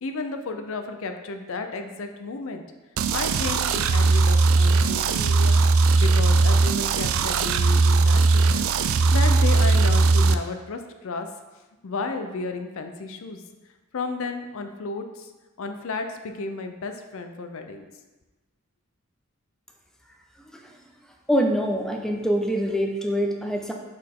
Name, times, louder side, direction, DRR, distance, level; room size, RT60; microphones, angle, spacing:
voice 1, 0.0-2.6 3.1-11.3 11.8-13.4 13.9-15.3 15.6-17.9, left 3 dB, 65° left, 6 dB, 0.5 m, -33 dB
sound 1, 3.0-10.3, right 3 dB, 65° right, 0.3 m, -19 dB
voice 2, 21.3-23.7, equal, ahead, 1 dB, 0.5 m, -24 dB
6.3 x 4.4 x 3.6 m, 1.1 s
head